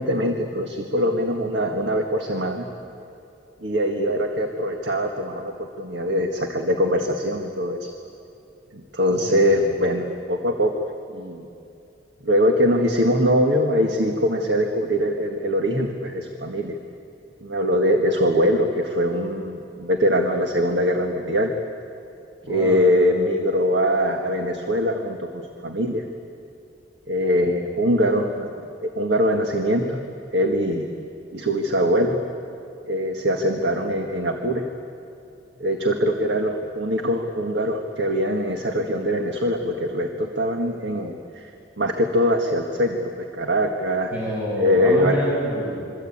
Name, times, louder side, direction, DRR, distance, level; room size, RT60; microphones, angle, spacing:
voice 1, 0.0-2.7 3.6-7.9 8.7-10.7 11.1-11.5 12.2-16.8 17.4-21.5 22.5-26.1 27.1-28.5 28.8-30.0 30.3-30.9 31.3-32.2 32.9-34.6 35.6-41.5 41.8-44.1 44.6-45.2, equal, 70° right, 3 dB, 1.8 m, -22 dB
voice 2, 9.1-9.7 22.4-22.8 44.1-45.9, equal, 10° right, -7 dB, 6.6 m, -28 dB
26.5 x 24.5 x 8.8 m, 2.7 s
head